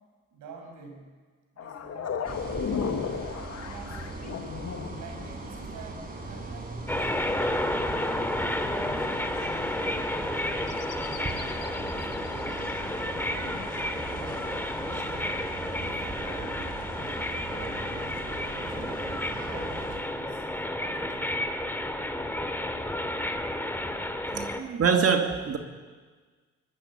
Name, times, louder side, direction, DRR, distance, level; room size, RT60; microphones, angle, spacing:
voice 1, 0.3-1.2 1.5-3.4 3.6-4.3 4.9-8.1 8.6-10.4 10.9-13.8 14.0-15.4 15.7-16.7 17.4-17.9 18.3-20.5 20.8-21.5, right 4 dB, 85° right, 4 dB, 6.4 m, -48 dB
sound 1, 1.6-5.7 9.7-10.1 10.4-12.9 13.1-13.7 16.2-18.1 18.4-18.5, left 6 dB, 55° left, 2.0 m, -37 dB
sound 2, 2.2-20.0, right 2 dB, 30° right, 6.3 m, -40 dB
sound 3, 6.9-24.6, left 1 dB, 5° left, 2.4 m, -31 dB
voice 2, 24.3-25.6, right 6 dB, 50° right, 4 dB, 2.6 m, -24 dB
23.0 x 17.5 x 9.9 m, 1.4 s
cardioid pair, 90°, 30 cm